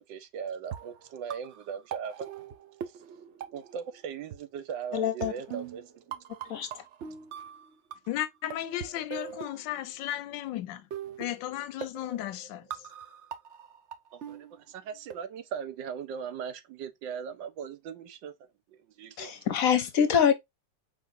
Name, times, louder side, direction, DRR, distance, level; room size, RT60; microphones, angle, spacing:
voice 1, 0.1-2.3 3.5-5.8 14.1-18.3 19.0-19.4, right 7 dB, 80° right, 1.4 m, -39 dB
sound 1, 0.6-4.0 4.3-4.4 5.2-8.2 8.5-10.2 10.9-15.1, right 9 dB, 60° right, 0.7 m, -42 dB
voice 2, 4.9-5.3 6.5-6.7 19.2-20.3, left 8 dB, 60° left, 1.0 m, -24 dB
voice 3, 8.1-10.9 11.2-12.9, left 13 dB, 90° left, 1.3 m, -35 dB
5.0 x 3.8 x 2.6 m
omnidirectional pair, 2.0 m